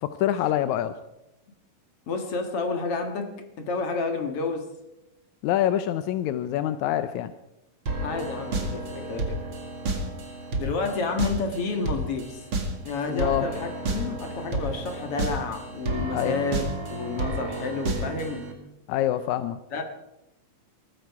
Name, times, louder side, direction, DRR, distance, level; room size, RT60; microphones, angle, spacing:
voice 1, 0.0-1.0 5.4-7.3 13.1-13.5 16.1-16.4 18.9-19.6, left 12 dB, 75° left, 12 dB, 1.8 m, -25 dB
voice 2, 2.1-4.7 8.0-9.4 10.6-12.4 12.8-18.5 19.7-19.8, left 3 dB, 50° left, 5 dB, 2.2 m, -30 dB
sound 1, 7.9-18.5, right 2 dB, 40° right, 2.5 m, -31 dB
21.0 x 14.5 x 4.7 m, 0.89 s
omnidirectional pair, 4.0 m